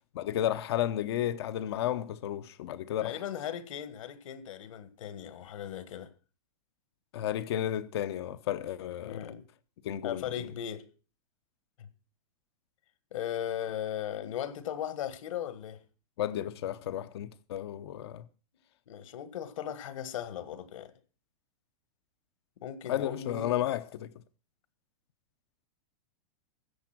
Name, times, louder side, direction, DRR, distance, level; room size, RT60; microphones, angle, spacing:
voice 1, 0.1-3.1 7.1-9.3 9.8-10.2 16.2-18.2 22.9-24.1, left 11 dB, 45° left, 0.8 m, -32 dB
voice 2, 3.0-6.1 9.0-9.4 10.0-10.9 11.8-11.9 13.1-15.8 18.9-20.9 22.6-23.6, left 10 dB, 65° left, 1.8 m, -37 dB
14.0 x 8.2 x 6.0 m
supercardioid pair, 170°, 18 cm